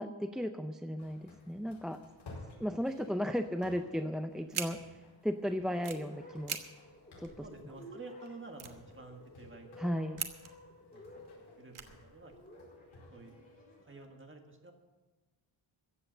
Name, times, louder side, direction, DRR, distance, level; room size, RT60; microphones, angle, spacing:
voice 1, 0.0-2.0 2.6-6.6 7.2-7.3 9.8-10.2, equal, ahead, 7 dB, 0.4 m, -35 dB
sound 1, 1.0-14.1, left 2 dB, 75° left, 4.7 m, -57 dB
sound 2, 4.5-4.7 5.6-6.0 6.4-6.6 6.9-7.0 7.2-7.8 8.2-8.3 8.5-9.5 10.1-10.7 11.1-11.3 11.7-12.5, right 7 dB, 85° right, 1.3 m, -41 dB
sound 3, 5.8-13.8, left 2 dB, 15° left, 3.3 m, -54 dB
voice 2, 7.4-10.1 10.9-12.6 13.1-14.7, right 3 dB, 25° right, 3 dB, 1.8 m, -51 dB
14.5 x 8.2 x 7.6 m, 1.2 s
wide cardioid pair, 170°, 48 cm